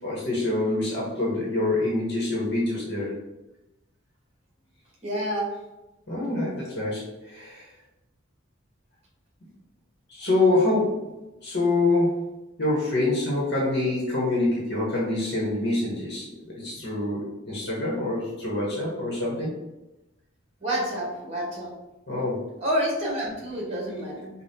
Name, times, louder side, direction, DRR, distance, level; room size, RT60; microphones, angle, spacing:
voice 1, 0.0-3.1 6.1-7.7 10.1-11.0 11.4-12.2 12.6-19.5 22.1-22.4, left 2 dB, 55° left, -5 dB, 1.1 m, -26 dB
voice 2, 5.0-5.5 20.6-21.7 22.6-24.3, equal, 30° right, -3 dB, 1.2 m, -28 dB
5.3 x 2.3 x 2.8 m, 0.99 s
head